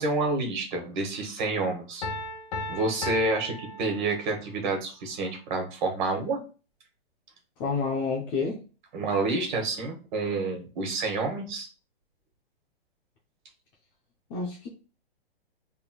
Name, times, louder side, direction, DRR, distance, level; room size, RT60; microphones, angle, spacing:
voice 1, 0.0-2.1 2.7-6.4 8.9-11.7, right 3 dB, 50° right, 3 dB, 1.4 m, -29 dB
Piano, 2.0-4.6, left 2 dB, 40° left, 0.8 m, -36 dB
voice 2, 7.6-8.6 14.3-14.7, left 4 dB, 15° left, -1 dB, 0.3 m, -29 dB
4.4 x 3.5 x 2.2 m, 0.34 s
hypercardioid pair, 140°, 31 cm